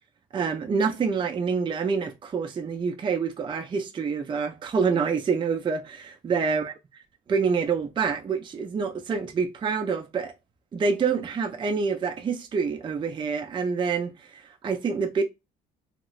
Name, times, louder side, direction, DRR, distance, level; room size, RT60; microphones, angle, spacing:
voice 1, 0.3-6.7 7.3-10.3 10.7-15.2, right 5 dB, 30° right, 0.4 m, -27 dB
3.0 x 2.9 x 2.4 m
cardioid pair, 110°, 17 cm